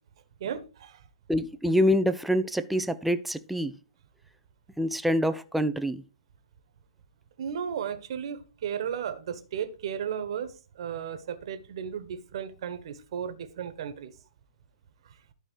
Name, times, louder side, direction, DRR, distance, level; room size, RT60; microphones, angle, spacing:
voice 1, 0.4-1.0 7.4-14.1, right 8 dB, 55° right, 1.3 m, -35 dB
voice 2, 1.3-3.7 4.8-6.0, equal, ahead, 0.5 m, -26 dB
12.0 x 4.4 x 4.7 m
hypercardioid pair, 135°, 3 cm